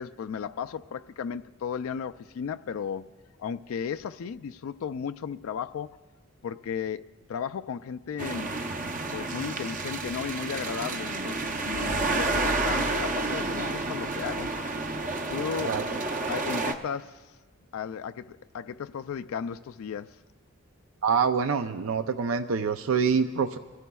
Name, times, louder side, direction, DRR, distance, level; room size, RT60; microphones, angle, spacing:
voice 1, 0.0-3.1 3.4-6.0 6.4-8.5 9.1-14.6 15.3-15.9 16.3-17.3 17.7-20.2, left 7 dB, 80° left, 0.3 m, -35 dB
sound 1, 8.2-16.7, right 3 dB, 40° right, 0.7 m, -30 dB
voice 2, 21.0-23.6, right 6 dB, 75° right, 0.5 m, -25 dB
24.0 x 16.0 x 2.3 m
head